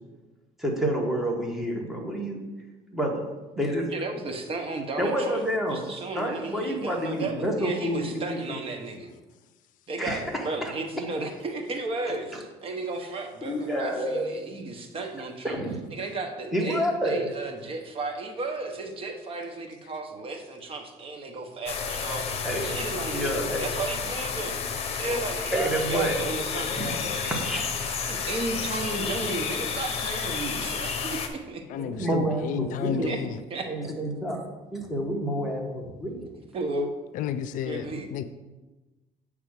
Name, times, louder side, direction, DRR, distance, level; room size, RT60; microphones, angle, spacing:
voice 1, 0.6-2.4 2.9-3.3 3.6-3.9 5.0-5.8 6.1-8.4 10.0-10.7 13.4-14.2 15.4-15.8 16.5-17.3 22.4-22.7 23.1-23.7 25.5-26.2 26.8-26.9 27.3-27.7 31.8-33.1 33.6-34.4 34.7-36.3, right 1 dB, ahead, -1 dB, 1.4 m, -28 dB
voice 2, 3.9-5.4 5.7-9.1 9.9-15.6 15.9-24.6 24.9-27.4 27.9-31.6 33.0-33.2 33.5-33.7 36.5-36.9 37.6-38.1, right 3 dB, 40° right, 4 dB, 1.0 m, -34 dB
sound 1, 21.7-31.3, left 6 dB, 45° left, 0.8 m, -31 dB
voice 3, 31.7-33.4 37.1-38.2, left 9 dB, 65° left, 11 dB, 0.5 m, -32 dB
8.1 x 3.6 x 6.4 m, 1.2 s
cardioid pair, 130°, 14 cm